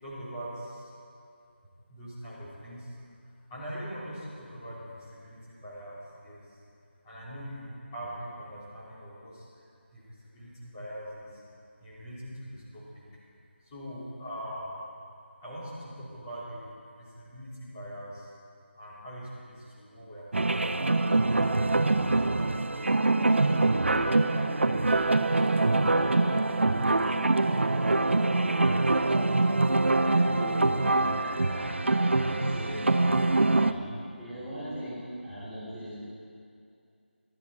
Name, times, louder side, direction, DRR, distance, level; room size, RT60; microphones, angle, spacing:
voice 1, 0.0-0.9 1.9-3.0 3.5-6.6 7.0-9.5 9.9-11.4 11.8-13.0 13.6-14.8 15.4-18.3 18.7-21.1 22.1-22.7 28.4-28.8 32.2-32.3, equal, 20° left, -11 dB, 3.4 m, -42 dB
sound 1, 20.3-33.7, right 2 dB, 75° right, 0.6 m, -24 dB
voice 2, 30.0-32.9 33.5-35.9, equal, 5° right, -18 dB, 2.9 m, -39 dB
14.0 x 12.0 x 4.2 m, 2.5 s
figure-of-eight pair, 165°, 6 cm